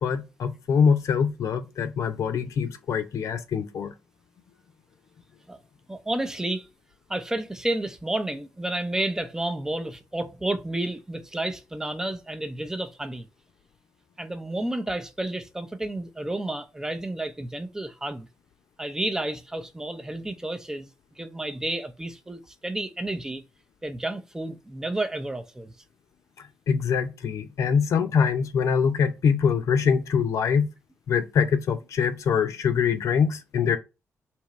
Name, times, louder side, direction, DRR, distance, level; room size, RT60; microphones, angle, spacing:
voice 1, 0.0-3.9 26.7-30.7 31.1-33.8, left 6 dB, 70° left, 0.7 m, -24 dB
voice 2, 5.9-6.7 7.1-13.3 14.2-18.3 18.8-20.9 21.2-23.4 23.8-25.7, right 1 dB, 10° right, 0.6 m, -31 dB
3.5 x 2.9 x 4.1 m
cardioid pair, 110°, 5 cm